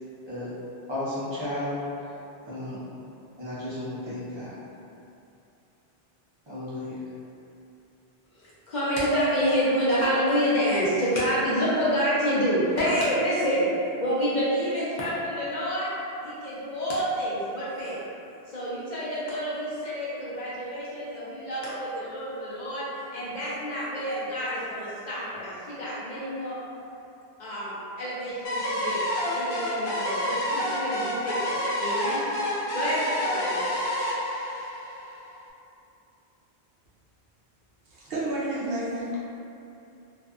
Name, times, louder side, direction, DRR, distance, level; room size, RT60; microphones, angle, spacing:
voice 1, 0.9-1.8 2.5-2.9 3.4-4.6 6.5-7.0, left 1 dB, 30° right, -11 dB, 0.7 m, -33 dB
voice 2, 8.3-13.7 14.0-15.9 16.2-18.0 18.5-26.6 27.4-29.0 29.3-32.2 32.7-33.6, equal, 55° left, -9 dB, 0.6 m, -28 dB
sound 1, 28.4-35.4, left 1 dB, 90° left, 0.9 m, -29 dB
voice 3, 37.9-39.2, right 1 dB, 70° right, -8 dB, 0.8 m, -30 dB
2.5 x 2.4 x 2.3 m, 2.7 s
omnidirectional pair, 1.0 m